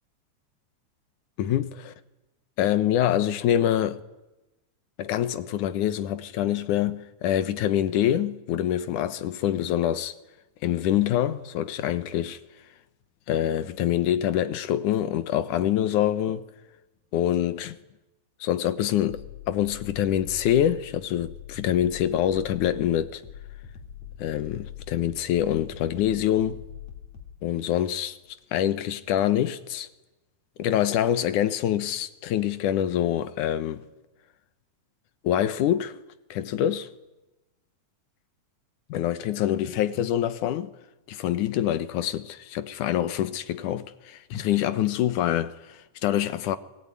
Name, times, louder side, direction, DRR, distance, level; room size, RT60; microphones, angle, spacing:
voice 1, 1.4-1.8 2.6-4.0 5.0-10.1 10.6-12.4 13.3-16.5 17.1-17.8 18.4-23.2 24.2-26.6 27.4-28.2 28.5-29.9 30.6-33.8 35.2-35.9 36.3-36.9 38.9-40.7 41.1-46.6, left 11 dB, 90° left, 2.7 m, -25 dB
sound 1, 19.1-27.4, left 9 dB, 60° left, 4.4 m, -43 dB
29.0 x 20.5 x 9.9 m
omnidirectional pair, 3.5 m